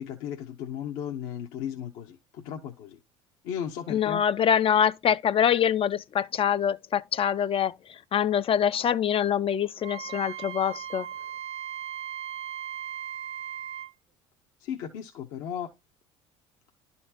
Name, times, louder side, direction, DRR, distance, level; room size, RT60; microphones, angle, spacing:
voice 1, 0.0-3.0 3.4-4.2 14.6-15.7, left 9 dB, 70° left, 1.1 m, -35 dB
voice 2, 3.9-11.1, left 8 dB, 35° left, 0.4 m, -25 dB
Wind instrument woodwind instrument, 9.8-13.9, right 10 dB, 40° right, 0.6 m, -37 dB
11.5 x 4.3 x 2.9 m
hypercardioid pair, 75°, 15 cm